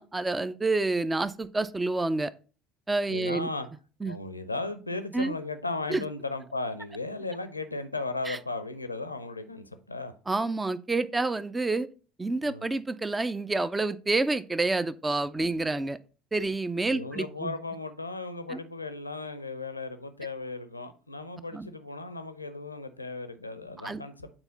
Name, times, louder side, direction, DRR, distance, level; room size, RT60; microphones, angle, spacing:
voice 1, 0.0-2.3 2.9-3.5 4.0-4.1 5.1-5.3 5.9-6.0 8.3-8.4 10.3-11.9 12.2-16.0 16.3-17.5 18.5-18.6 21.5-21.7 23.8-24.0, right 3 dB, 15° right, 0.5 m, -28 dB
voice 2, 3.1-3.7 4.0-10.1 12.4-12.7 16.8-24.3, left 3 dB, 85° left, 0.7 m, -36 dB
8.9 x 4.2 x 4.0 m
figure-of-eight pair, 65°, 0 cm